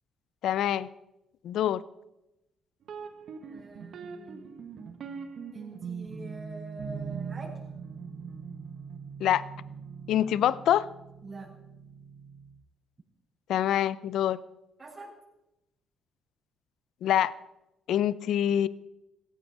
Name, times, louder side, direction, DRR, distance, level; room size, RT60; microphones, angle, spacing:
voice 1, 0.4-0.9 1.4-1.8 9.2-9.4 10.1-10.9 13.5-14.4 17.0-17.3 17.9-18.7, left 11 dB, 80° left, 19 dB, 0.6 m, -25 dB
sound 1, 2.8-12.6, right 6 dB, 65° right, 1.4 m, -41 dB
voice 2, 3.4-4.5 5.5-7.6 11.2-11.5 14.8-15.2, right 2 dB, 25° right, -5 dB, 6.6 m, -45 dB
16.5 x 14.0 x 4.7 m, 0.92 s
cardioid pair, 90°, 0 cm